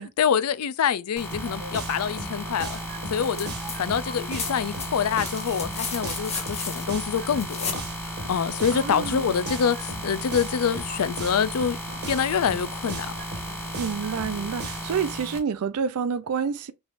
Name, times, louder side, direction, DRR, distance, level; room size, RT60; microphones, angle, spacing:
voice 1, 0.2-2.8 3.1-3.5 3.8-7.8 8.3-11.8 12.1-13.1, left 7 dB, 85° left, 0.4 m, -26 dB
sound 1, 1.2-15.4, equal, 10° left, 1.8 m, -35 dB
sound 2, 1.3-15.0, right 2 dB, 50° right, 1.3 m, -39 dB
sound 3, 3.2-3.8 4.0-7.9 9.5-9.6, left 5 dB, 30° left, 1.3 m, -34 dB
voice 2, 8.7-9.3 13.8-16.7, right 6 dB, 75° right, 0.4 m, -28 dB
5.2 x 3.3 x 2.5 m
head